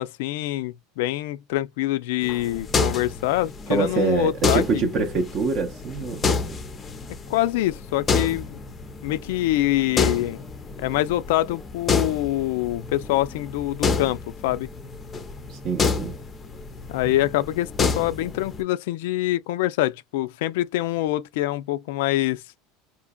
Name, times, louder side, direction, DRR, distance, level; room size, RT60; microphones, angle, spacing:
voice 1, 0.0-4.9 7.3-8.6 9.0-10.4 10.8-14.7 16.9-22.4, left 15 dB, 80° left, 0.3 m, -25 dB
sound 1, 2.2-18.6, left 4 dB, 20° left, 0.5 m, -29 dB
voice 2, 3.7-6.3 15.5-16.2, right 4 dB, 40° right, 0.5 m, -25 dB
3.8 x 2.7 x 2.2 m
cardioid pair, 160°, 0 cm